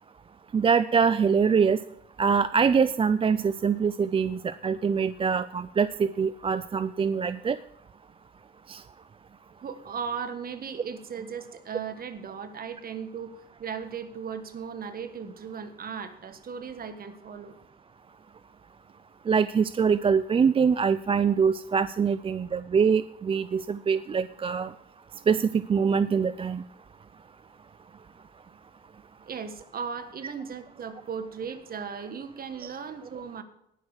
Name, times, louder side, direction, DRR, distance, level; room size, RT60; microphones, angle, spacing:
voice 1, 0.5-1.8 2.2-7.6 8.7-8.8 19.3-24.7 25.3-26.6 32.6-32.7, right 6 dB, 25° right, 14 dB, 0.4 m, -24 dB
voice 2, 9.6-17.5 29.3-33.4, right 6 dB, 50° right, 9 dB, 1.5 m, -37 dB
19.0 x 6.4 x 4.8 m, 0.79 s
cardioid pair, 90°, 20 cm